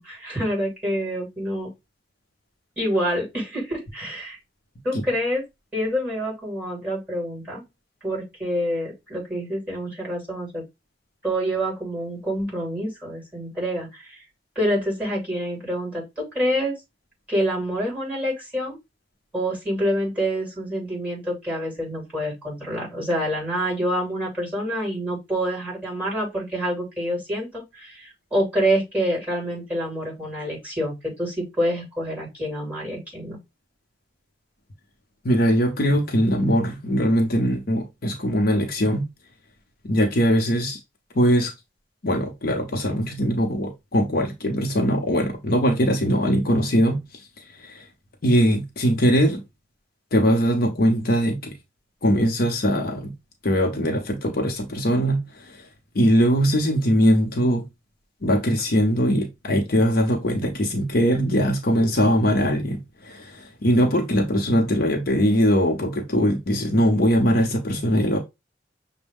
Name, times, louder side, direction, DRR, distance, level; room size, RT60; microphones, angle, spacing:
voice 1, 0.0-1.7 2.8-4.4 4.8-5.4 5.7-7.6 8.0-10.6 11.2-14.2 14.5-16.7 17.3-18.8 19.3-33.4, equal, 10° right, 2.8 m, -27 dB
voice 2, 35.2-39.0 39.8-40.8 41.1-41.5 42.0-47.0 47.6-47.9 48.2-49.4 50.1-51.5 52.0-53.1 53.4-55.6 55.9-57.7 58.2-68.2, equal, 55° left, 0.7 m, -21 dB
6.2 x 2.1 x 3.5 m
head